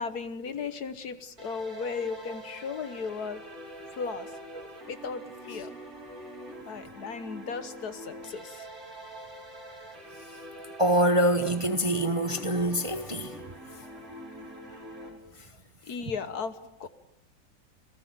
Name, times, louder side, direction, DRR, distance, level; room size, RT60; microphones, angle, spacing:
voice 1, 0.0-3.4 3.9-4.3 4.9-5.7 6.7-8.7 15.8-16.9, left 5 dB, 55° left, 1.5 m, -36 dB
sound 1, 1.4-15.1, right 1 dB, 45° right, 5.8 m, -44 dB
voice 2, 10.8-13.4, right 1 dB, 20° right, 1.1 m, -25 dB
28.5 x 18.5 x 9.3 m
omnidirectional pair, 2.0 m